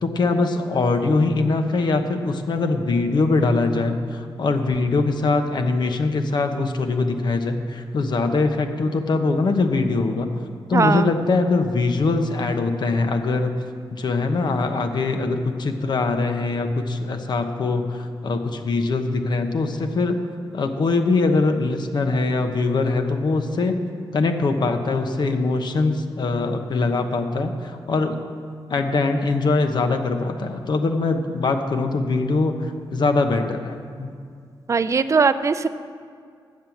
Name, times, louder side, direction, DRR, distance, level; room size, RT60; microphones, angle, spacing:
voice 1, 0.0-10.3 10.7-13.5 13.9-20.2 20.5-23.8 24.1-28.2 28.7-34.1, left 3 dB, 60° left, 6 dB, 0.9 m, -22 dB
voice 2, 10.7-11.1 34.7-35.7, right 5 dB, 35° right, 12 dB, 0.4 m, -19 dB
9.5 x 7.6 x 7.1 m, 2.2 s
cardioid pair, 85°, 8 cm